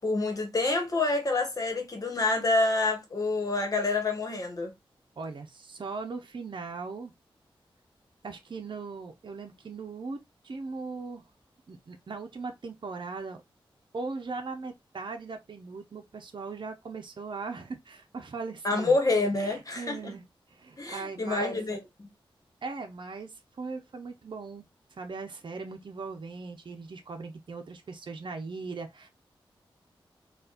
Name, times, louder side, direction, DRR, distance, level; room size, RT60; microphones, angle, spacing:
voice 1, 0.0-4.7 18.6-20.2 20.8-22.1, left 3 dB, 40° left, 1.3 m, -27 dB
voice 2, 5.2-7.1 8.2-11.2 11.7-13.4 13.9-18.9 19.4-20.3 20.5-21.6 22.6-24.6 25.0-29.1, right 4 dB, 60° right, 0.8 m, -39 dB
4.1 x 2.5 x 2.4 m
wide cardioid pair, 70°, 9 cm